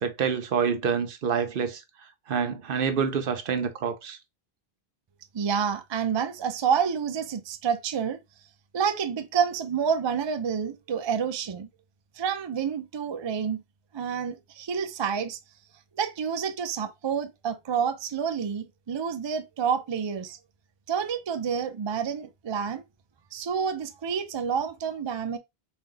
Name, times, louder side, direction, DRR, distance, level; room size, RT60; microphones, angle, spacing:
voice 1, 0.0-1.8 2.3-4.2, right 6 dB, 65° right, 0.8 m, -27 dB
voice 2, 5.3-8.2 8.7-11.7 12.1-13.6 13.9-15.4 15.9-20.4 20.9-22.8 23.3-25.4, right 7 dB, 45° right, 0.4 m, -28 dB
4.1 x 2.6 x 3.8 m
omnidirectional pair, 1.0 m